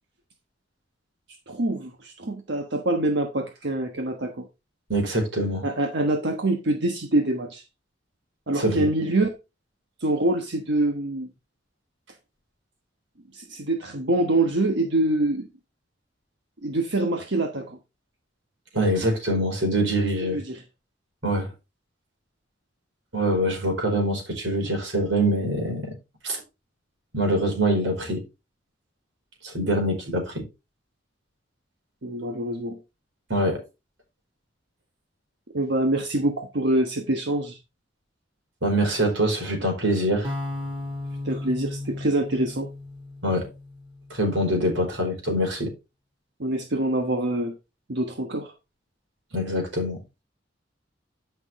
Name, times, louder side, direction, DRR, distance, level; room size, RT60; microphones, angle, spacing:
voice 1, 1.5-4.5 5.6-7.6 8.5-9.3 10.0-11.3 13.3-15.5 16.6-17.8 20.2-20.6 32.0-32.8 35.5-37.6 41.2-42.7 46.4-47.5 47.9-48.5, right 1 dB, 65° right, 1.3 m, -25 dB
voice 2, 4.9-5.6 8.5-8.9 18.7-20.4 21.2-21.5 23.1-25.9 26.2-26.4 27.1-28.2 29.4-30.4 33.3-33.6 38.6-40.3 43.2-43.5 44.1-45.7 49.3-50.0, right 1 dB, 85° right, 4.6 m, -24 dB
sound 1, 40.2-44.4, left 2 dB, 30° right, 3.8 m, -35 dB
10.5 x 6.0 x 3.6 m
head